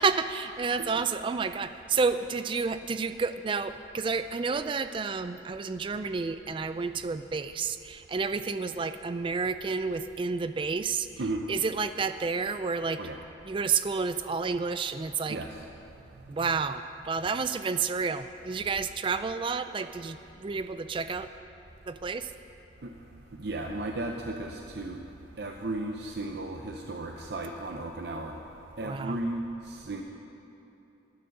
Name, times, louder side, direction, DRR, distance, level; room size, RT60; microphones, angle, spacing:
voice 1, 0.0-11.1 11.5-13.0 13.4-15.4 16.3-21.3 21.9-22.3 28.8-29.2, right 5 dB, 25° right, 11 dB, 0.3 m, -30 dB
voice 2, 15.3-15.6 22.8-22.9 23.3-25.0 25.4-28.4 28.8-30.0, right 2 dB, 60° right, 2 dB, 0.7 m, -35 dB
12.5 x 9.3 x 6.5 m, 2.9 s
head